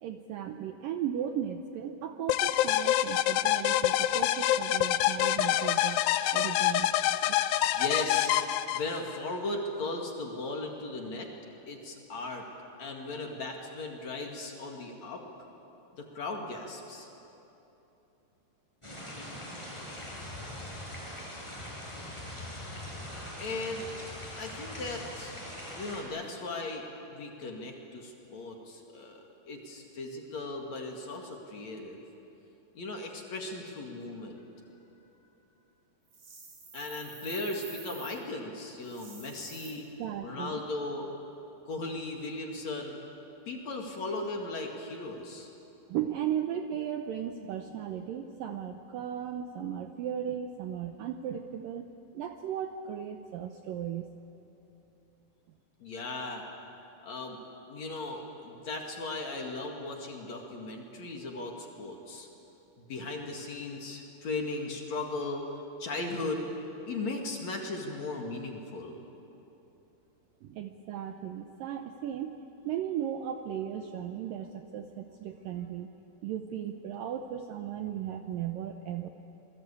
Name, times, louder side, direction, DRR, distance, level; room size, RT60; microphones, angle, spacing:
voice 1, 0.0-6.0 6.3-6.9 40.0-40.6 45.9-51.9 52.1-54.1 70.4-72.4 72.7-75.9 76.2-79.1, right 9 dB, 75° right, 6 dB, 2.1 m, -36 dB
sound 1, 2.3-9.2, left 13 dB, 80° left, 2.1 m, -26 dB
voice 2, 7.4-11.3 11.7-12.5 12.8-15.2 15.9-17.1 23.4-23.9 24.4-25.3 25.7-29.2 29.5-32.0 32.7-34.4 36.7-39.9 40.2-41.1 41.7-43.0 43.5-45.5 55.8-56.5 57.0-57.4 57.7-62.3 62.8-65.4 65.8-66.4 66.8-68.9, left 2 dB, 50° left, 1 dB, 2.9 m, -37 dB
sound 2, 18.8-26.0, left 1 dB, 5° left, 6.5 m, -42 dB
sound 3, 36.1-38.2 38.8-39.7, right 4 dB, 50° right, 5.4 m, -48 dB
27.5 x 21.5 x 8.5 m, 3.0 s
omnidirectional pair, 4.9 m